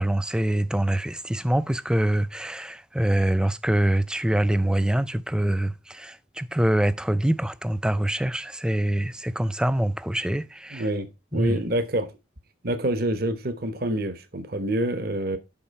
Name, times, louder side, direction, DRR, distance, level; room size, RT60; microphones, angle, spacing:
voice 1, 0.0-10.9 11.3-11.6, right 1 dB, 5° right, 0.3 m, -24 dB
voice 2, 10.7-12.1 12.6-15.4, right 1 dB, 50° right, 1.0 m, -27 dB
8.8 x 5.5 x 4.1 m
head